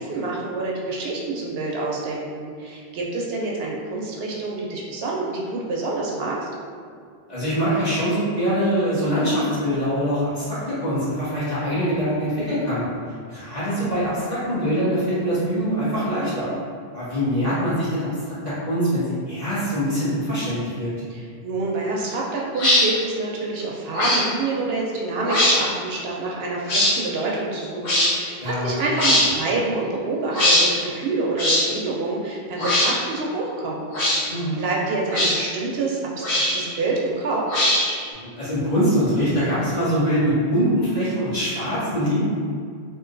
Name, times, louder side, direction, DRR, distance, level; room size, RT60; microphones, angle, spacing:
voice 1, 0.0-6.5 21.1-34.3 34.6-37.5, right 3 dB, 75° right, -3 dB, 0.8 m, -27 dB
voice 2, 7.3-12.9 13.3-16.5 16.9-20.9 28.4-29.0 34.3-34.6 38.1-42.2, equal, 40° left, -13 dB, 1.6 m, -23 dB
sound 1, 22.6-22.8 23.9-24.2 25.2-25.6 26.7-26.9 27.8-28.1 29.0-29.3 30.3-30.7 31.4-31.6 32.6-32.9 33.9-34.2 35.1-35.4 36.2-36.7 37.5-38.0, left 1 dB, 65° left, 1.1 m, -19 dB
3.7 x 2.5 x 2.5 m, 2.2 s
omnidirectional pair, 1.1 m